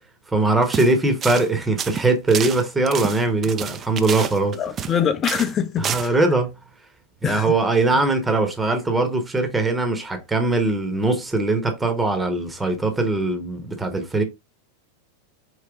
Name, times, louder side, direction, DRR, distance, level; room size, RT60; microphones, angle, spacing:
voice 1, 0.3-4.6 5.8-6.6 7.2-14.2, right 2 dB, 10° right, 0.9 m, -21 dB
sound 1, 0.6-0.9 1.2-1.5 1.8-5.0 5.2-5.5 5.8-6.1, right 8 dB, 25° right, 0.5 m, -29 dB
voice 2, 4.6-6.1 7.2-7.5, left 8 dB, 25° left, 0.6 m, -24 dB
4.8 x 3.1 x 3.5 m
figure-of-eight pair, 90°, 0 cm